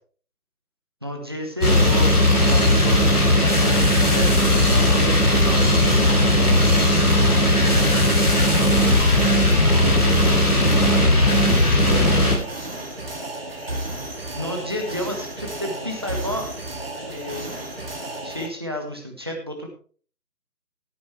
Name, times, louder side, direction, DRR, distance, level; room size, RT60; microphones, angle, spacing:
voice 1, 1.0-6.5 6.9-7.9 9.8-11.2 11.7-12.5 14.4-16.5 17.0-17.5 18.2-19.7, equal, 15° right, 2 dB, 1.2 m, -32 dB
sound 1, 1.6-12.4, left 1 dB, 65° left, 3.7 m, -17 dB
sound 2, 1.7-18.5, right 1 dB, 35° right, 2.3 m, -33 dB
16.0 x 9.4 x 3.2 m, 0.42 s
figure-of-eight pair, 160°, 48 cm